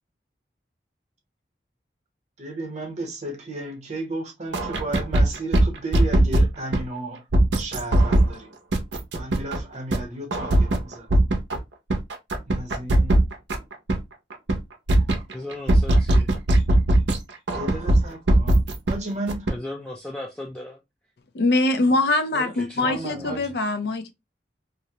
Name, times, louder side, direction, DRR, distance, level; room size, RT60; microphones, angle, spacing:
voice 1, 2.4-7.2 7.6-8.5 9.1-11.1 12.5-13.2 17.5-19.5 22.3-23.6, right 2 dB, 40° right, 0.8 m, -34 dB
sound 1, 4.5-6.8 7.3-8.3 8.7-9.6 9.9-10.0 10.3-11.6 11.9-14.0 14.3-14.6 14.9-17.2 17.5-18.9 19.3-19.5, right 1 dB, 85° right, 0.5 m, -19 dB
voice 2, 15.3-16.3 19.5-20.8 22.5-23.4, left 1 dB, 5° left, 0.3 m, -36 dB
voice 3, 21.3-24.1, left 2 dB, 65° left, 0.5 m, -23 dB
2.5 x 2.0 x 2.7 m
head